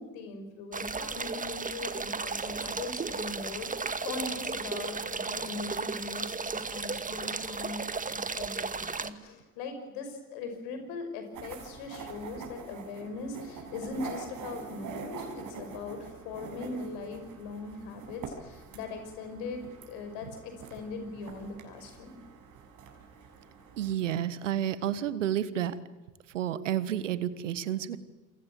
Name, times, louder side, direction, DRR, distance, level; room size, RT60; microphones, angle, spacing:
voice 1, 0.0-22.1, left 3 dB, 70° left, 7 dB, 6.0 m, -40 dB
sound 1, 0.7-9.1, right 4 dB, 20° right, 1.9 m, -34 dB
sound 2, 11.3-23.9, right 5 dB, 60° right, 6.6 m, -45 dB
voice 2, 23.8-25.7 26.3-28.0, right 11 dB, 85° right, 15 dB, 1.4 m, -30 dB
28.0 x 23.5 x 7.8 m, 1.2 s
hypercardioid pair, 55°, 36 cm